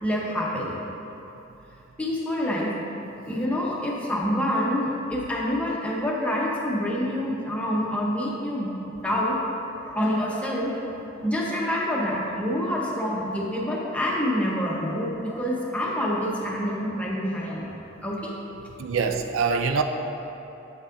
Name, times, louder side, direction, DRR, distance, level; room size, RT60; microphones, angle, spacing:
voice 1, 0.0-0.8 2.0-2.7 3.3-9.4 9.8-17.7 18.0-18.3, equal, 5° left, -4 dB, 0.9 m, -27 dB
voice 2, 18.8-19.8, right 5 dB, 70° right, 6 dB, 0.4 m, -24 dB
8.0 x 7.1 x 2.6 m, 3.0 s
head